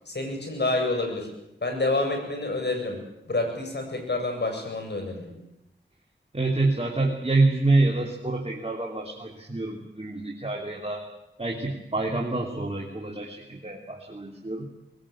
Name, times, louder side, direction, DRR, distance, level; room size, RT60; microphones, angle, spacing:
voice 1, 0.1-1.3 1.6-3.0 3.3-5.4, left 2 dB, 55° left, 4 dB, 7.5 m, -28 dB
voice 2, 6.3-11.0 11.4-14.6, right 2 dB, 30° right, 0 dB, 3.2 m, -27 dB
21.0 x 19.0 x 8.7 m, 0.89 s
cardioid pair, 40°, 21 cm